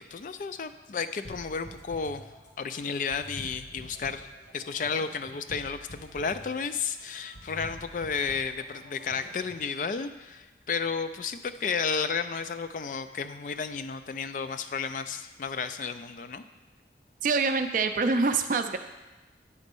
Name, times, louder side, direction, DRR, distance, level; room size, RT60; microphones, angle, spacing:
voice 1, 0.0-2.2 2.6-4.3 4.5-16.4, left 5 dB, 45° left, 10 dB, 0.3 m, -32 dB
sound 1, 1.2-9.7, equal, 85° left, 1.5 m, -47 dB
voice 2, 17.2-18.8, right 4 dB, 45° right, 8 dB, 0.4 m, -25 dB
9.5 x 4.1 x 5.3 m, 1.1 s
head